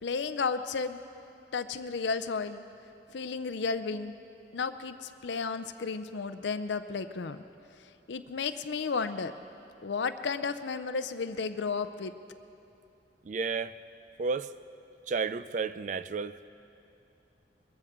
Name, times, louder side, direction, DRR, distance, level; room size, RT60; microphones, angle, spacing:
voice 1, 0.0-1.0 1.5-2.6 3.1-4.1 4.5-7.4 8.1-9.3 9.8-12.1, left 5 dB, 80° left, 11 dB, 0.5 m, -33 dB
voice 2, 13.2-13.8 14.2-14.5 15.1-16.4, right 4 dB, 40° right, 14 dB, 0.4 m, -32 dB
21.5 x 14.5 x 3.7 m, 2.7 s
head